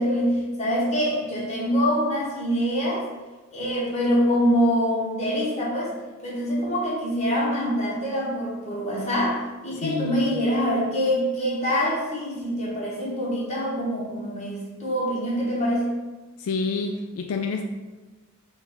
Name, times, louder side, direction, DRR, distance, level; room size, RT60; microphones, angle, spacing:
voice 1, 0.0-3.0 3.5-5.9 6.2-9.4 9.6-15.9, equal, 30° left, -5 dB, 1.1 m, -25 dB
voice 2, 9.7-10.2 16.4-17.6, left 4 dB, 80° left, 4 dB, 0.3 m, -28 dB
4.6 x 2.3 x 3.9 m, 1.2 s
head